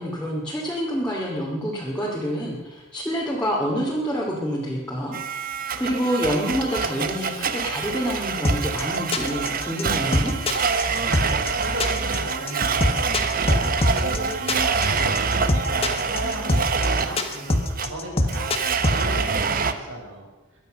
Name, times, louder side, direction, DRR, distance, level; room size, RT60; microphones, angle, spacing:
voice 1, 0.0-5.2 5.8-10.3, equal, 5° left, -6 dB, 2.7 m, -27 dB
Domestic sounds home sounds, 5.1-19.7, right 5 dB, 45° right, 1.0 m, -26 dB
sound 1, 8.4-19.0, left 1 dB, 30° left, 1.5 m, -23 dB
voice 2, 10.9-20.3, right 1 dB, 75° right, 0 dB, 5.3 m, -36 dB
22.5 x 9.4 x 6.5 m, 1.1 s
head